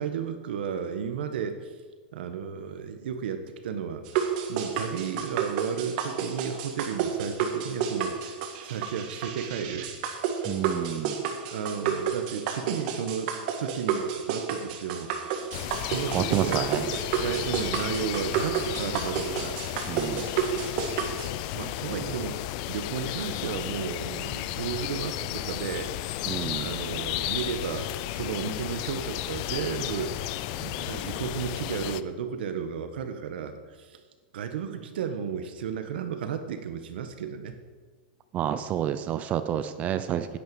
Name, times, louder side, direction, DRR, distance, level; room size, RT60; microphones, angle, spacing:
voice 1, 0.0-1.7 2.1-8.3 8.6-10.0 11.0-15.5 15.8-19.6 21.5-30.3 30.6-34.0 34.3-37.6, right 7 dB, 75° right, 8 dB, 1.4 m, -33 dB
sound 1, 4.0-21.3, right 7 dB, 50° right, 1.7 m, -31 dB
voice 2, 10.4-11.2 16.1-16.9 19.9-20.3 22.0-22.1 26.3-26.7 38.3-40.4, right 10 dB, 25° right, 11 dB, 0.5 m, -29 dB
sound 2, 15.5-32.0, left 15 dB, 45° left, 0.5 m, -33 dB
10.5 x 8.9 x 7.0 m, 1.5 s
supercardioid pair, 155°, 5 cm